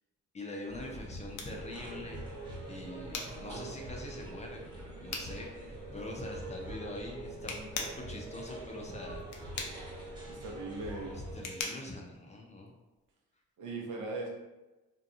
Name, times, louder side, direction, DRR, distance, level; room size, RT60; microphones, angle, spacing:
voice 1, 0.3-2.3 2.7-4.6 5.0-9.2 11.3-12.7, left 1 dB, 25° left, 0 dB, 0.5 m, -44 dB
sound 1, 0.7-11.4, equal, 15° right, 1.0 m, -46 dB
sound 2, 0.8-13.1, left 4 dB, 70° left, 0.6 m, -44 dB
sound 3, 1.5-11.6, right 3 dB, 30° right, 0.5 m, -47 dB
voice 2, 10.3-11.1 13.6-14.3, right 3 dB, 80° right, -2 dB, 0.7 m, -39 dB
2.8 x 2.2 x 2.6 m, 1.1 s
cardioid pair, 90°, 30 cm